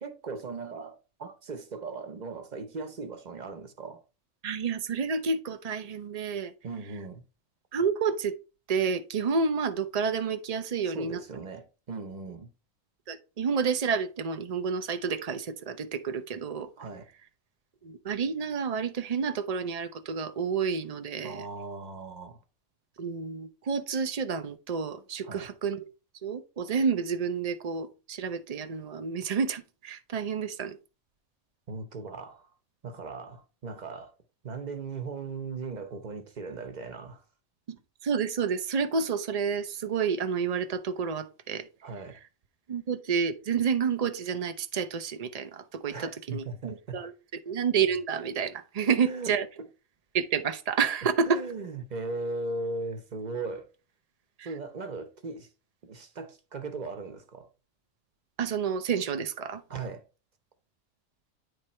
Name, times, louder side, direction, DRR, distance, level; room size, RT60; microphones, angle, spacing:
voice 1, 0.0-4.0 6.6-7.2 10.8-12.5 16.8-17.1 21.2-22.4 25.2-25.5 31.7-32.5 32.8-34.1 34.4-37.2 41.8-42.2 45.9-47.0 49.0-49.4 51.3-53.7 54.4-55.5 55.8-57.5 59.7-60.0, right 3 dB, 35° right, 0.8 m, -38 dB
voice 2, 4.4-6.5 7.7-8.3 8.7-11.2 13.1-16.7 17.8-21.4 23.0-25.8 26.2-30.8 37.7-41.7 42.7-47.1 47.5-49.5 50.1-51.4 54.4-54.5 58.4-59.6, right 6 dB, 85° right, 0.3 m, -29 dB
9.2 x 3.3 x 4.2 m
omnidirectional pair, 1.5 m